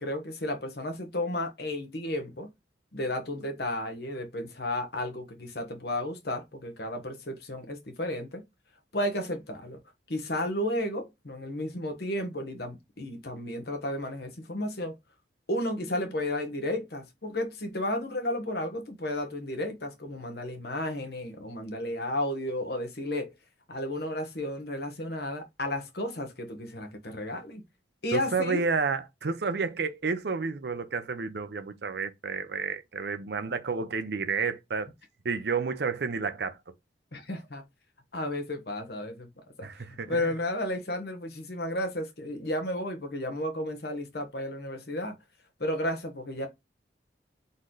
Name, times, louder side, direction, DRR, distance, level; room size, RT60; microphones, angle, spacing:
voice 1, 0.0-2.5 2.9-8.4 8.9-9.8 10.1-14.9 15.5-23.3 23.7-27.6 28.0-28.6 37.1-37.6 38.1-39.3 39.6-39.7 40.0-45.2 45.6-46.5, left 1 dB, 60° left, 1.1 m, -33 dB
voice 2, 28.1-34.9 35.2-36.6 39.6-40.3, right 5 dB, 65° right, 0.6 m, -30 dB
4.0 x 3.1 x 3.8 m
head